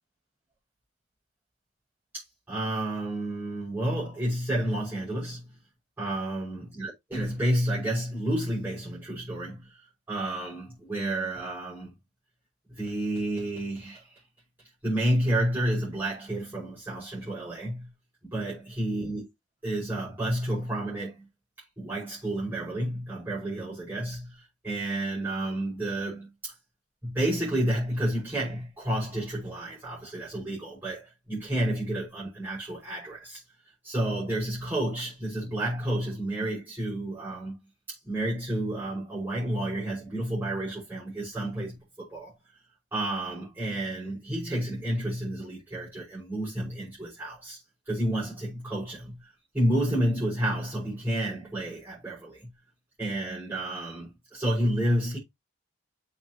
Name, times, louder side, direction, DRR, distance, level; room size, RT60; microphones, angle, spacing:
voice 1, 2.1-5.5 6.0-9.8 10.1-11.9 12.7-14.1 14.8-17.9 18.2-19.3 19.6-21.3 21.8-26.5 27.0-33.4 33.8-37.6 37.9-42.3 42.9-47.6 47.9-52.5 53.0-55.2, right 1 dB, 10° right, 5.8 m, -30 dB
7.6 x 6.5 x 3.0 m
head